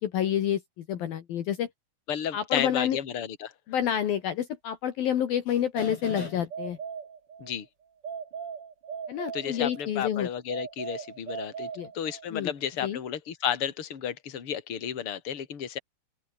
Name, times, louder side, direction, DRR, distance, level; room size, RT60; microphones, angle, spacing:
voice 1, 0.0-1.7 2.3-3.0 3.7-6.8 9.1-10.3 11.8-11.9 12.3-12.5 12.8-13.0, left 10 dB, 65° left, 3.2 m, -28 dB
voice 2, 2.1-3.5 7.4-7.7 9.3-11.7 11.9-15.8, left 9 dB, 35° left, 3.1 m, -32 dB
sound 1, 5.8-7.5 8.0-10.0 10.5-12.4, right 6 dB, 40° right, 2.6 m, -39 dB
open air
omnidirectional pair, 5.0 m